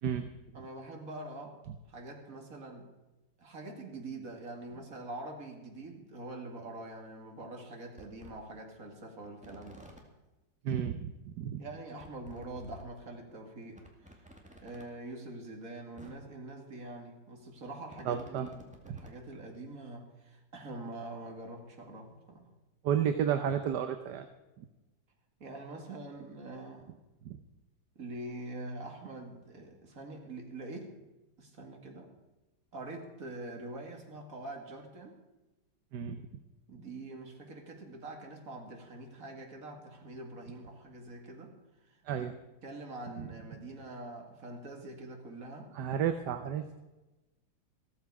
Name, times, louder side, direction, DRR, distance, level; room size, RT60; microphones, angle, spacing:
voice 1, 0.5-1.6 1.9-2.9 3.4-9.9 11.6-13.8 14.0-14.2 14.6-22.5 25.4-27.0 28.0-30.9 31.4-32.1 32.7-35.2 36.7-41.5 41.9-42.3 42.6-45.7, right 2 dB, 45° right, 2 dB, 2.6 m, -44 dB
sound 1, 5.7-5.9 6.9-7.0 7.5-7.6 8.0-8.3 9.2-10.0 11.1-11.2 11.4-11.5 12.0-12.8 13.3-13.4 13.7-14.8 15.7-15.8 16.0-16.1 17.4-19.2 19.7-19.8, equal, 5° right, 2.0 m, -53 dB
voice 2, 10.6-11.6 18.1-18.5 18.9-19.0 22.8-24.3 27.2-27.4 35.9-36.2 42.0-42.3 43.2-43.3 45.7-46.7, right 8 dB, 65° right, 8 dB, 1.3 m, -32 dB
15.0 x 14.0 x 4.9 m, 1.1 s
omnidirectional pair, 2.1 m